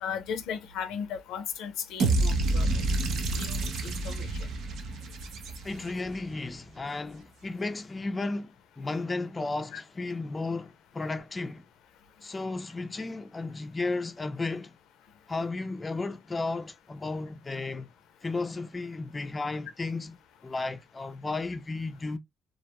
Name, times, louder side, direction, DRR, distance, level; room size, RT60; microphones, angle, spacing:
voice 1, 0.0-2.7 3.3-4.3 9.7-9.8, left 7 dB, 90° left, 0.4 m, -36 dB
sound 1, 2.0-6.1, right 2 dB, 75° right, 0.6 m, -28 dB
voice 2, 5.6-11.6 12.2-14.7 15.3-17.9 18.2-20.2 20.4-22.2, left 3 dB, 25° left, 0.3 m, -34 dB
2.3 x 2.1 x 2.8 m
cardioid pair, 90°, 0 cm